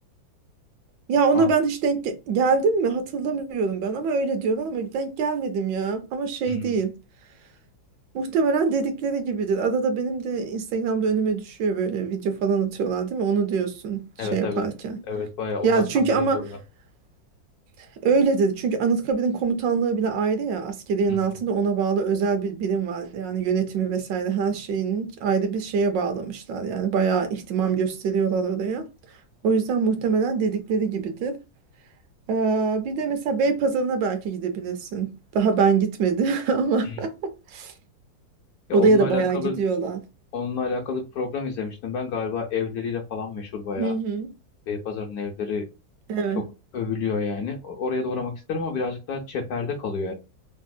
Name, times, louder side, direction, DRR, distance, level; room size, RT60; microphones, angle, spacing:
voice 1, 1.1-6.9 8.1-15.0 15.6-16.4 18.0-28.9 29.4-31.4 32.3-37.7 38.7-40.0 43.8-44.3 46.1-46.4, right 5 dB, 75° right, 1.2 m, -24 dB
voice 2, 14.2-14.7 15.1-15.8 16.1-16.5 21.1-21.2 36.8-37.0 38.7-39.6 40.3-43.9 44.7-45.6 46.3-46.5 46.7-50.1, left 5 dB, 70° left, 0.9 m, -29 dB
3.3 x 2.7 x 2.2 m
omnidirectional pair, 2.0 m